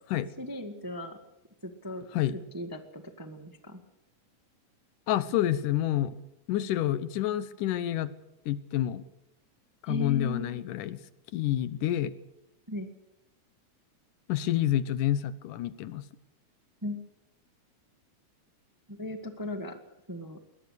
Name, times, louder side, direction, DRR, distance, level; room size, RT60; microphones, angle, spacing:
voice 1, 0.4-1.2 1.6-2.1 2.5-3.8 9.9-10.6 12.7-12.9 16.8-17.0 18.9-19.8 20.1-20.4, left 1 dB, 15° right, 7 dB, 0.6 m, -37 dB
voice 2, 5.1-6.2 6.5-8.1 8.5-9.0 9.8-11.0 11.3-12.1 14.3-16.1, left 12 dB, 85° left, 15 dB, 2.6 m, -28 dB
22.0 x 19.5 x 6.5 m, 0.93 s
omnidirectional pair, 3.6 m